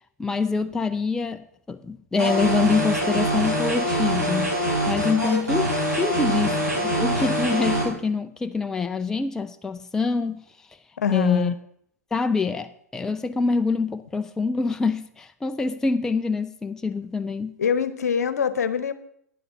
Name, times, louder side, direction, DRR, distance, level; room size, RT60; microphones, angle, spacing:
voice 1, 0.2-4.6 4.9-10.4 11.1-11.5 12.1-17.5, left 4 dB, 5° left, 0.4 m, -25 dB
sound 1, 2.2-7.8, right 1 dB, 80° right, 4.2 m, -24 dB
voice 2, 11.0-11.5 17.6-18.9, left 7 dB, 65° left, 0.9 m, -24 dB
9.4 x 6.8 x 6.5 m
figure-of-eight pair, 110°, 9 cm